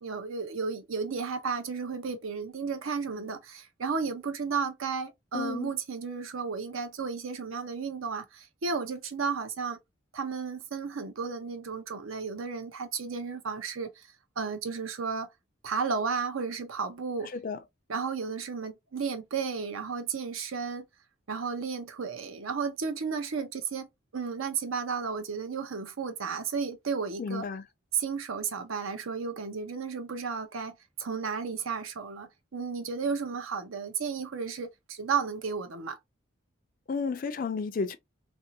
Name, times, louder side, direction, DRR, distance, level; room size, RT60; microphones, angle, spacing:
voice 1, 0.0-9.8 10.1-14.1 14.4-15.3 15.6-17.3 17.9-20.8 21.3-23.9 24.1-27.5 27.9-36.0, right 5 dB, 85° right, 0.7 m, -33 dB
voice 2, 5.3-5.7 17.3-17.6 27.2-27.6 36.9-38.0, left 4 dB, 45° left, 0.3 m, -32 dB
2.9 x 2.7 x 2.6 m
head